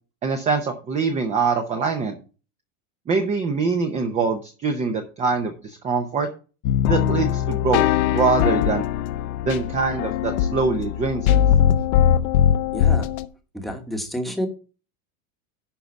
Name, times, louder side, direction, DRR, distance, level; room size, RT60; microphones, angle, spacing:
voice 1, 0.2-2.1 3.1-6.3 6.9-8.8 9.4-11.4, right 4 dB, 15° right, 5 dB, 0.7 m, -24 dB
sound 1, 6.6-13.3, left 10 dB, 75° left, 1.1 m, -20 dB
voice 2, 12.7-13.1 13.5-14.5, equal, ahead, 4 dB, 1.2 m, -29 dB
11.5 x 3.9 x 7.0 m, 0.35 s
supercardioid pair, 165°, 43 cm